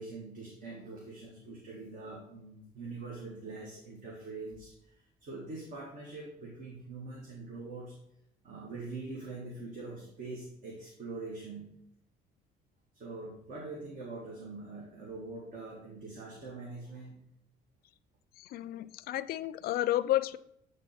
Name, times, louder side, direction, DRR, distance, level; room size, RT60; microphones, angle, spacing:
voice 1, 0.0-8.0 8.4-11.7 12.9-17.2, right 3 dB, 55° right, -2 dB, 1.7 m, -43 dB
voice 2, 18.4-20.4, left 14 dB, 65° left, 16 dB, 0.4 m, -31 dB
8.3 x 3.6 x 4.2 m, 0.77 s
cardioid pair, 110°, 17 cm